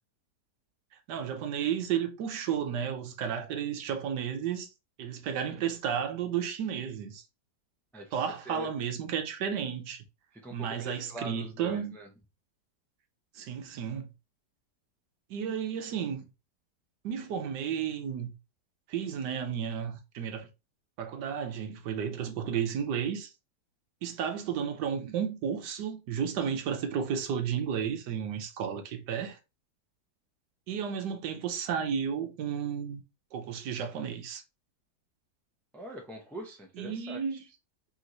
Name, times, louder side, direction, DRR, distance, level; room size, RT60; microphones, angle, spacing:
voice 1, 1.1-4.7 5.0-7.2 8.1-10.0 10.5-11.9 13.3-14.1 15.3-16.2 17.0-18.3 18.9-20.5 21.0-23.3 24.0-29.4 30.7-33.0 33.3-34.4 36.8-37.4, right 8 dB, 80° right, 1.4 m, -33 dB
voice 2, 7.9-8.7 10.3-12.1 35.7-37.4, equal, ahead, 0.3 m, -43 dB
3.5 x 3.1 x 3.8 m
omnidirectional pair, 1.8 m